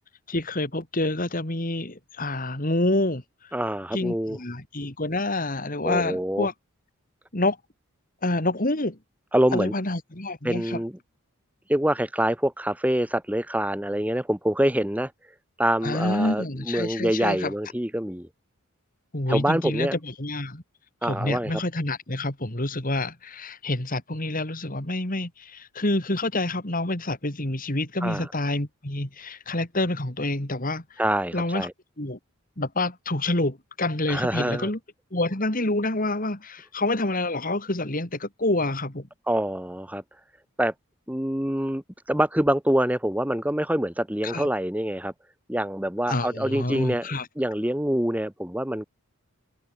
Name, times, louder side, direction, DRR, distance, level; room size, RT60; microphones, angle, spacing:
voice 1, 0.3-3.2 3.9-6.5 7.3-7.6 8.2-9.0 9.5-10.8 15.8-17.5 19.1-20.6 21.0-30.8 31.3-31.7 32.0-32.2 32.6-34.8 35.1-39.1 44.2-44.5 46.1-47.3, left 2 dB, 40° left, 2.9 m, -27 dB
voice 2, 3.5-4.4 5.8-6.5 9.3-9.7 10.4-10.9 11.7-15.1 15.6-18.3 19.3-20.0 21.0-21.6 28.0-28.3 31.0-31.7 34.1-34.7 39.3-40.0 40.6-40.7 41.1-41.8 42.1-45.1 45.5-48.9, right 1 dB, 5° right, 1.3 m, -25 dB
open air
head